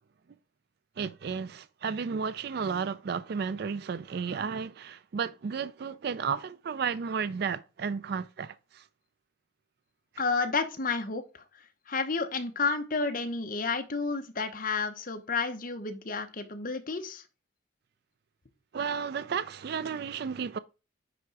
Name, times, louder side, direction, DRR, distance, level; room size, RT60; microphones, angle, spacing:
voice 1, 1.0-8.8 18.7-20.6, right 6 dB, 55° right, 0.4 m, -33 dB
voice 2, 10.2-11.2 11.9-17.2, left 4 dB, 45° left, 1.0 m, -31 dB
9.8 x 3.7 x 4.5 m
head